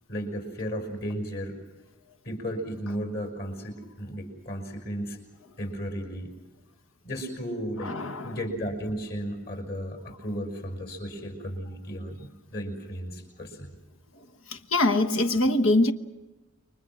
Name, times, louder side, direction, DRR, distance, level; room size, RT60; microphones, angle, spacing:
voice 1, 0.1-1.6 2.2-5.2 5.6-6.3 7.0-7.9 8.2-13.7, equal, 50° left, 6.1 m, -34 dB
voice 2, 7.8-8.4 14.5-15.9, left 2 dB, 75° left, 1.3 m, -23 dB
30.0 x 24.0 x 6.3 m
head